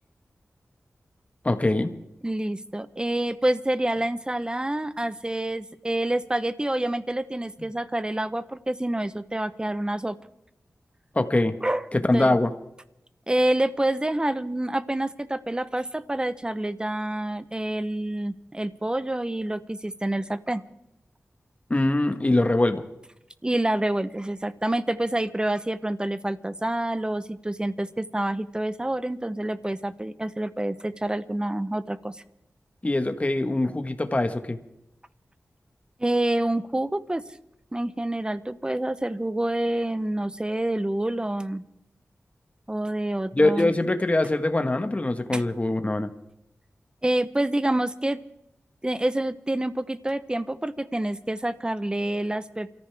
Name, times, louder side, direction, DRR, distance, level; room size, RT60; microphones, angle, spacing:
voice 1, 1.4-1.9 11.1-11.6 11.9-12.5 21.7-22.8 32.8-34.6 43.3-46.1, left 2 dB, 30° left, 8 dB, 1.4 m, -23 dB
voice 2, 2.2-10.2 11.6-11.9 12.1-12.4 13.3-20.6 23.4-32.2 36.0-37.2 37.7-41.6 42.7-43.7 45.3-45.4 47.0-48.2 48.8-52.7, right 1 dB, 15° right, 13 dB, 0.9 m, -27 dB
28.5 x 14.0 x 3.5 m, 0.85 s
wide cardioid pair, 70°, 5 cm